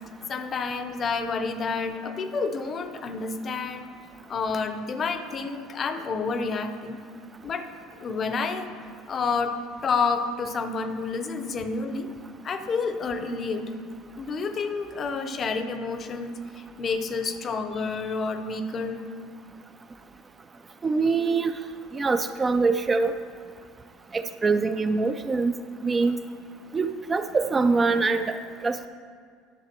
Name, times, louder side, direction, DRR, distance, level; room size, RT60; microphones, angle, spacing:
voice 1, 0.3-3.9 4.3-7.0 7.4-7.7 8.0-8.7 9.1-12.1 12.4-13.7 14.2-19.1, left 4 dB, 30° left, 9 dB, 0.6 m, -29 dB
voice 2, 20.8-21.5 21.9-23.1 24.1-25.5 25.8-26.2 26.7-28.4 28.6-28.9, right 4 dB, 20° right, 9 dB, 0.3 m, -24 dB
11.0 x 6.7 x 4.4 m, 2.1 s
supercardioid pair, 125°, 0 cm